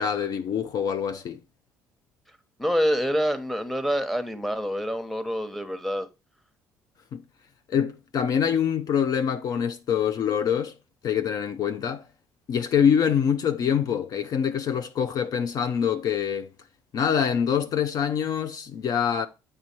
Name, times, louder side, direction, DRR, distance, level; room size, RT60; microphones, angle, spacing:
voice 1, 0.0-1.4 7.1-7.2 7.7-10.8 11.0-12.0 12.5-16.5 16.9-19.3, left 8 dB, 50° left, 0.4 m, -25 dB
voice 2, 2.6-6.1, equal, ahead, 0.9 m, -26 dB
8.0 x 3.3 x 4.3 m
hypercardioid pair, 55°, 8 cm